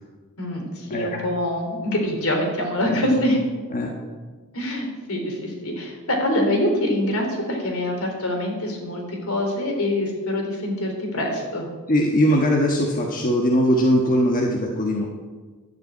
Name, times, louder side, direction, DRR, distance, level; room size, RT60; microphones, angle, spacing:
voice 1, 0.4-3.4 4.5-11.7, left 1 dB, 75° left, 1 dB, 3.5 m, -25 dB
voice 2, 0.9-1.2 2.9-3.0 3.7-3.9 11.9-15.1, equal, 40° left, 0 dB, 1.3 m, -20 dB
11.5 x 7.5 x 8.6 m, 1.4 s
head